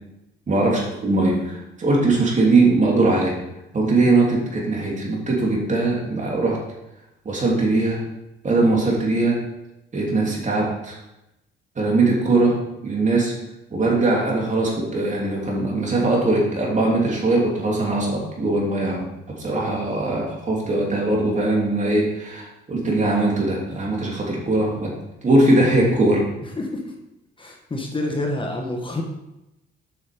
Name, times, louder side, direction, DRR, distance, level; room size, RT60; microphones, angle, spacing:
voice 1, 0.5-3.4 3.7-6.6 7.2-8.0 8.4-9.4 9.9-11.0 11.8-12.6 12.8-13.3 13.7-19.1 19.4-24.9 25.2-26.3, right 2 dB, 40° right, -2 dB, 3.1 m, -20 dB
voice 2, 26.4-26.9 27.4-29.0, left 2 dB, 25° left, 1 dB, 1.4 m, -28 dB
8.1 x 6.4 x 5.2 m, 0.91 s
cardioid pair, 90°, 20 cm